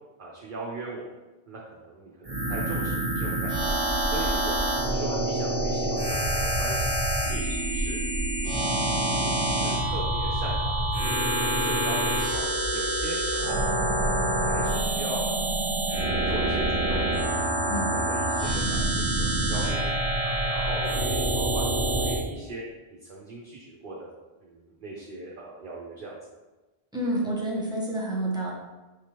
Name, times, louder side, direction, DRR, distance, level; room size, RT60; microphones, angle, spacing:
voice 1, 0.2-1.1 1.5-3.8 4.1-4.6 4.9-6.9 7.2-8.0 8.4-8.7 9.0-10.9 11.4-12.4 12.7-13.6 13.9-15.5 16.0-16.6 16.9-17.0 17.4-18.9 19.2-19.9 20.2-21.7 22.0-22.6 22.9-24.1 24.4-26.2, right 2 dB, 55° right, -5 dB, 0.9 m, -39 dB
sound 1, 2.2-22.2, right 1 dB, 35° right, 1.2 m, -26 dB
voice 2, 26.9-28.5, right 1 dB, 5° right, -4 dB, 0.7 m, -28 dB
4.8 x 3.4 x 2.9 m, 1.1 s
omnidirectional pair, 1.1 m